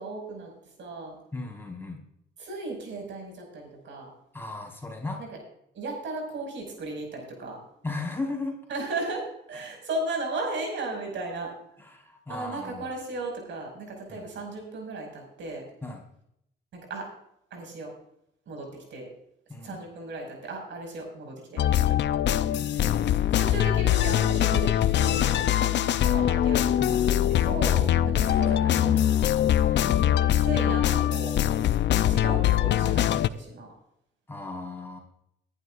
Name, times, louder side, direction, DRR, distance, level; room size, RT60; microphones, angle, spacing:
voice 1, 0.0-1.2 2.4-4.1 5.2-5.4 5.7-7.6 8.7-11.5 12.3-15.6 16.7-17.1 17.5-17.9 18.5-19.1 19.6-22.0 23.3-29.2 30.0-31.4 32.1-33.7, right 2 dB, 70° right, 1 dB, 5.7 m, -36 dB
voice 2, 1.3-2.0 4.3-5.2 7.8-8.6 11.8-12.9 14.1-14.2 15.8-16.0 19.5-19.8 22.4-23.1 26.8-27.6 29.5-30.2 34.3-35.0, left 3 dB, 10° left, 0 dB, 4.5 m, -36 dB
sound 1, 21.6-33.3, left 11 dB, 65° left, 0.6 m, -23 dB
21.0 x 11.0 x 2.5 m, 0.75 s
cardioid pair, 90°, 20 cm